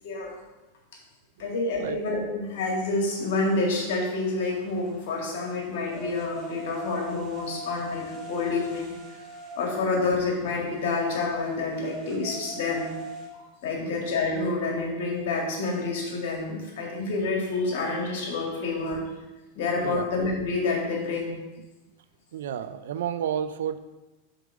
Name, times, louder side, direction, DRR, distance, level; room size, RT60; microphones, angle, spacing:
voice 1, 0.0-0.3 1.4-8.9 9.6-12.9 13.4-19.0 19.6-21.4, left 3 dB, 65° left, -1 dB, 2.1 m, -28 dB
voice 2, 1.4-2.0 19.8-20.1 22.3-23.8, right 9 dB, 75° right, 12 dB, 0.4 m, -31 dB
sound 1, 2.8-13.3, right 1 dB, 15° right, 1.9 m, -43 dB
5.1 x 4.5 x 5.1 m, 1.1 s
hypercardioid pair, 100°, 0 cm